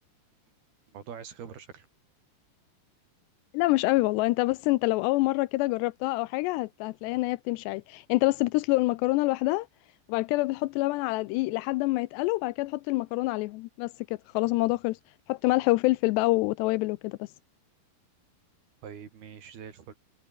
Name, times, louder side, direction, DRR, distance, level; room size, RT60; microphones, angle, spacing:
voice 1, 0.9-1.9 18.8-19.9, right 7 dB, 55° right, 4.9 m, -43 dB
voice 2, 3.5-9.7 10.1-15.0 15.3-17.3, left 21 dB, 90° left, 2.4 m, -26 dB
omnidirectional pair, 5.7 m